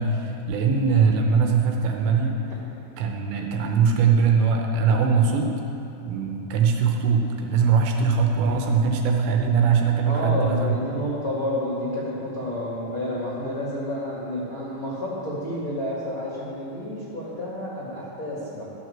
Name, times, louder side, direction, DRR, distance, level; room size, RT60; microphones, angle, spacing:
voice 1, 0.0-2.4 3.0-5.5 6.1-10.8, right 5 dB, 80° right, 2 dB, 2.8 m, -21 dB
voice 2, 10.0-18.6, left 1 dB, 75° left, -7 dB, 0.8 m, -30 dB
12.5 x 6.2 x 7.4 m, 2.9 s
omnidirectional pair, 5.5 m